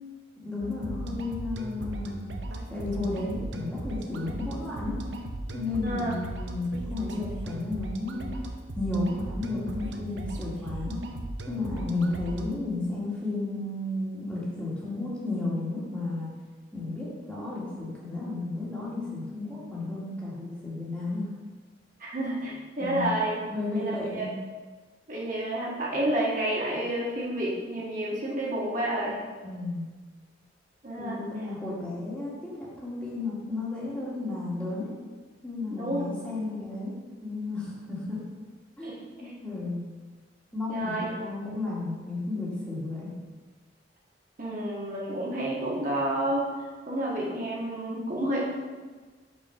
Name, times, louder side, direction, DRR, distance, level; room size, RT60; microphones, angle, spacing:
voice 1, 0.4-2.2 2.7-5.0 5.5-8.3 8.8-11.0 11.5-16.3 16.7-21.3 22.8-23.1 23.5-24.3 29.4-29.9 31.0-34.9 35.4-36.9 37.2-38.2 38.8-39.9 40.5-43.2, left 2 dB, 5° left, -7 dB, 1.7 m, -33 dB
sound 1, 0.6-12.6, right 1 dB, 75° right, 0.7 m, -37 dB
voice 2, 5.8-6.1 22.0-23.4 23.7-24.3 25.1-29.2 30.8-31.2 35.7-36.0 38.8-39.0 40.7-41.1 44.4-46.4 46.9-48.4, right 1 dB, 45° right, -5 dB, 1.6 m, -30 dB
5.5 x 4.7 x 5.6 m, 1.4 s
head